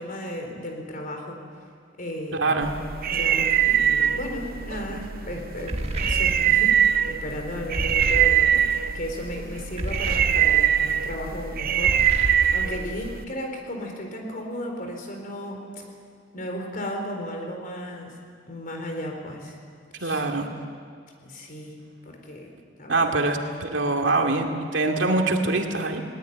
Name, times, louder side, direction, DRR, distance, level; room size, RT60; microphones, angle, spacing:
voice 1, 0.0-1.4 2.0-2.6 3.1-8.5 8.9-15.8 16.3-18.2 18.5-19.6 20.0-20.2 21.2-22.5 22.8-23.1, left 1 dB, 50° left, 3 dB, 4.1 m, -35 dB
voice 2, 2.4-2.7 20.0-20.5 22.9-26.0, right 2 dB, 80° right, 3 dB, 2.4 m, -24 dB
sound 1, 2.6-13.2, right 10 dB, 55° right, 0.7 m, -23 dB
sound 2, 5.7-6.8 7.7-8.8 9.8-10.9 11.8-12.9, right 1 dB, 35° right, 1.4 m, -31 dB
21.0 x 19.0 x 9.4 m, 2.1 s
head